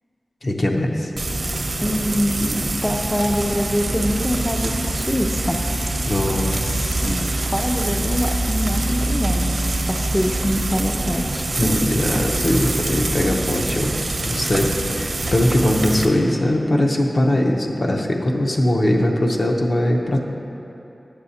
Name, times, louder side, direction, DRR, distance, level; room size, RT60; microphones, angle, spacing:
voice 1, 0.4-1.1 6.1-7.1 11.6-13.9 14.2-20.2, left 1 dB, 55° left, 0 dB, 0.6 m, -21 dB
Frying (food), 1.2-16.1, right 2 dB, 60° right, 0.7 m, -24 dB
voice 2, 1.8-5.6 6.5-6.6 7.0-11.9, equal, 5° left, 2 dB, 0.4 m, -24 dB
9.8 x 7.0 x 2.8 m, 2.9 s
wide cardioid pair, 80°, 0 cm